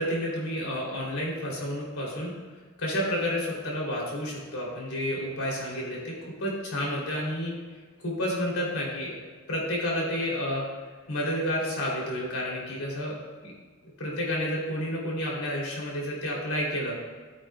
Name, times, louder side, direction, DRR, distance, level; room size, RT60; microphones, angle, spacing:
voice 1, 0.0-2.3 2.8-6.1 6.4-7.5 8.0-10.6 11.1-13.1 13.4-13.5 14.0-16.9, equal, 80° left, -4 dB, 3.0 m, -30 dB
13.5 x 8.6 x 2.3 m, 1.4 s
head